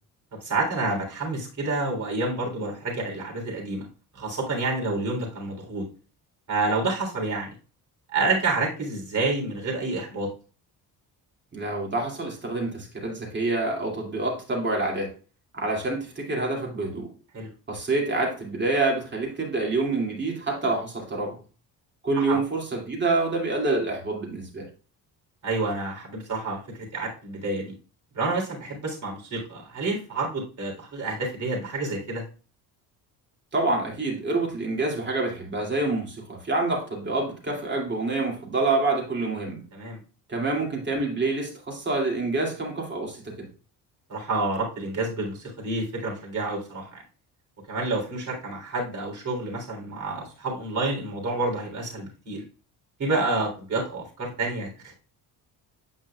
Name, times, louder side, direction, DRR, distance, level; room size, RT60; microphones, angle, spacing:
voice 1, 0.4-3.9 4.1-5.9 6.5-7.5 8.1-10.3 17.3-17.5 22.3-22.4 25.4-27.7 28.1-32.2 39.7-40.0 44.1-47.0 47.7-52.4 53.0-54.9, right 2 dB, 50° right, -1 dB, 3.4 m, -29 dB
voice 2, 11.5-15.1 15.5-17.1 17.7-21.4 22.0-24.7 33.5-39.6 40.3-43.5, right 2 dB, 25° right, 0 dB, 2.5 m, -27 dB
8.8 x 5.4 x 2.3 m, 0.35 s
cardioid pair, 100°, 40 cm